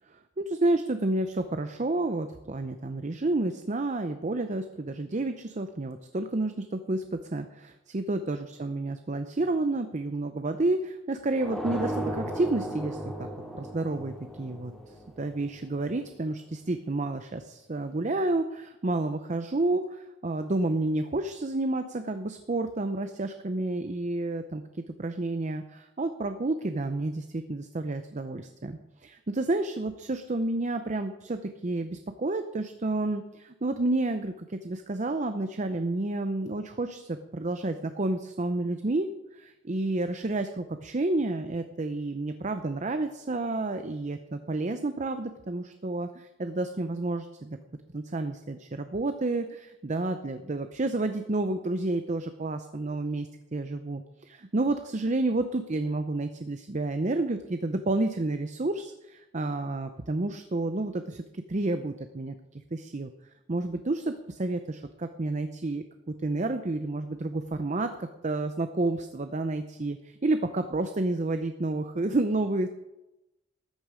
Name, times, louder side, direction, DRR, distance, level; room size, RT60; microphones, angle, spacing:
voice 1, 0.1-13.3 13.5-14.7 15.2-47.6 47.9-63.1 63.5-72.7, right 2 dB, 40° right, 8 dB, 0.6 m, -30 dB
sound 1, 11.4-16.1, equal, ahead, 2.1 m, -36 dB
14.0 x 9.5 x 5.0 m, 0.96 s
head